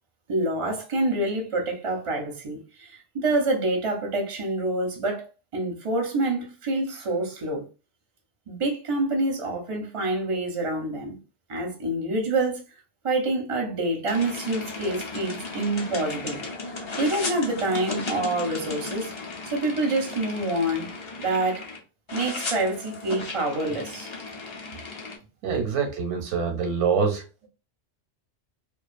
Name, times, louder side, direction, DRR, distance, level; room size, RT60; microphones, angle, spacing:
voice 1, 0.3-5.3 5.5-7.7 8.5-11.2 11.5-12.6 13.0-16.4 17.0-19.1 19.4-20.9 21.2-21.7 22.1-24.1, right 2 dB, 40° right, 0.5 m, -27 dB
sound 1, 14.1-21.8 22.1-25.2, left 3 dB, 45° left, 0.4 m, -35 dB
voice 2, 25.4-27.2, right 5 dB, 85° right, 0.9 m, -25 dB
2.4 x 2.3 x 2.3 m
omnidirectional pair, 1.2 m